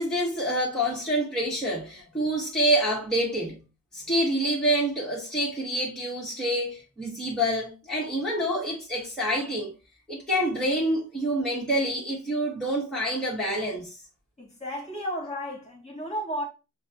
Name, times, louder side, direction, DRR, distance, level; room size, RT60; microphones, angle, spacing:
voice 1, 0.0-3.6 3.9-9.7 10.1-14.0, right 1 dB, ahead, 1.6 m, -27 dB
voice 2, 14.4-16.4, equal, 20° left, 1.9 m, -33 dB
5.4 x 2.3 x 2.8 m
cardioid pair, 90°, 30 cm